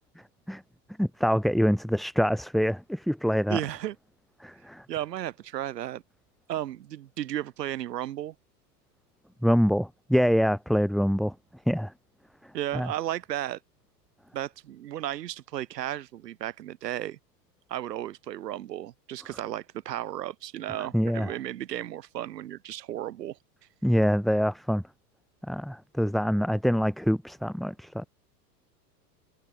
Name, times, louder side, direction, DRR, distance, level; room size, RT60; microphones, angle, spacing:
voice 1, 1.0-3.6 4.4-4.9 9.4-11.3 11.7-11.9 12.7-12.9 20.9-21.3 23.8-24.8 25.5-28.0, equal, ahead, 1.7 m, -25 dB
voice 2, 3.5-4.0 4.9-6.0 6.5-8.3 12.5-13.6 14.3-17.2 17.7-23.4, right 12 dB, 75° right, 2.2 m, -34 dB
hypercardioid pair, 105°, 49 cm